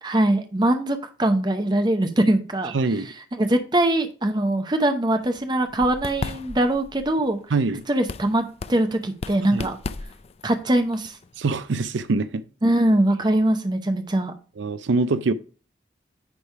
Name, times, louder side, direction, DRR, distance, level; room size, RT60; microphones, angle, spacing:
voice 1, 0.0-2.7 3.3-7.4 7.9-9.8 10.4-11.2 12.6-14.3, right 1 dB, 25° right, 0.8 m, -22 dB
voice 2, 2.7-3.1 7.5-7.8 9.5-9.7 11.4-12.4 14.6-15.3, right 3 dB, 80° right, 0.5 m, -23 dB
sound 1, 5.2-11.9, left 3 dB, 35° left, 0.3 m, -37 dB
9.7 x 3.4 x 4.7 m
head